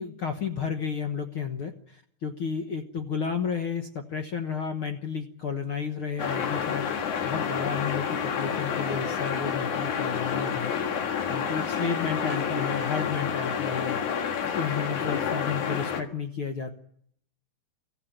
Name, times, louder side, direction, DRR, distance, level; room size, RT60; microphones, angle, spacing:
voice 1, 0.0-14.0 14.4-16.7, left 6 dB, 75° left, 5 dB, 1.2 m, -32 dB
sound 1, 6.2-16.0, left 7 dB, 60° left, 2.8 m, -29 dB
24.5 x 14.5 x 9.0 m, 0.69 s
omnidirectional pair, 4.3 m